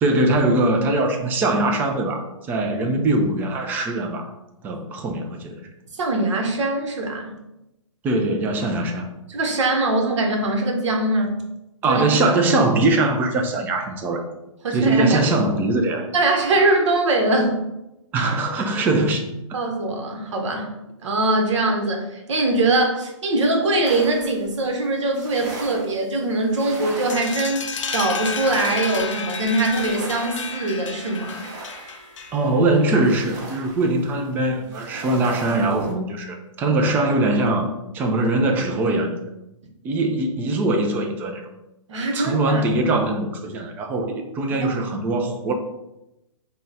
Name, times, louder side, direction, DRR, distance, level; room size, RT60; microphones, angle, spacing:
voice 1, 0.0-4.3 4.6-5.6 8.0-9.1 11.8-14.2 14.7-16.1 18.1-19.3 32.3-37.7 37.9-39.2 39.8-41.5 42.1-45.5, right 2 dB, 10° right, 4 dB, 0.3 m, -21 dB
voice 2, 5.9-7.3 9.3-11.4 11.9-12.0 14.6-15.2 16.1-17.6 19.5-20.7 21.0-31.4 41.9-42.6 44.6-44.8, right 2 dB, 65° right, 2 dB, 0.9 m, -22 dB
sound 1, 23.8-35.9, right 2 dB, 35° right, 0.8 m, -39 dB
sound 2, 27.1-32.6, left 6 dB, 70° left, 0.6 m, -31 dB
3.8 x 2.2 x 4.0 m, 0.92 s
hypercardioid pair, 140°, 17 cm